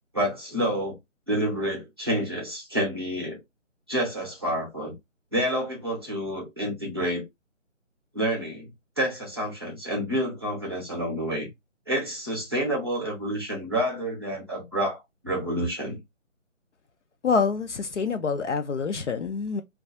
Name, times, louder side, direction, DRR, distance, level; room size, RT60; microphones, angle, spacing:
voice 1, 0.1-1.0 1.3-3.4 3.9-4.9 5.3-7.2 8.1-8.7 9.0-11.5 11.9-16.0, equal, 20° right, 0.6 m, -28 dB
voice 2, 17.2-19.6, left 5 dB, 70° left, 0.5 m, -26 dB
2.3 x 2.2 x 2.6 m
figure-of-eight pair, 155°, 38 cm